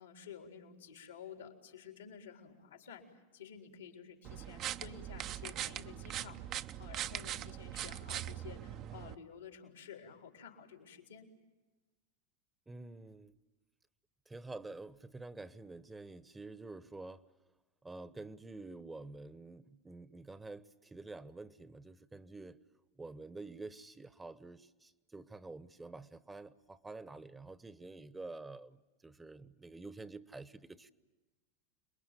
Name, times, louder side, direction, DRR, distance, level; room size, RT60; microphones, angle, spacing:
voice 1, 0.0-6.5 6.8-11.3, left 7 dB, 85° left, 4 dB, 3.9 m, -52 dB
sound 1, 4.2-9.1, right 11 dB, 45° right, 0.8 m, -41 dB
voice 2, 12.7-13.4 14.3-17.2 17.8-22.6 23.0-30.9, right 3 dB, 10° right, 16 dB, 1.0 m, -48 dB
28.5 x 22.0 x 9.2 m, 1.1 s
hypercardioid pair, 90°, 0 cm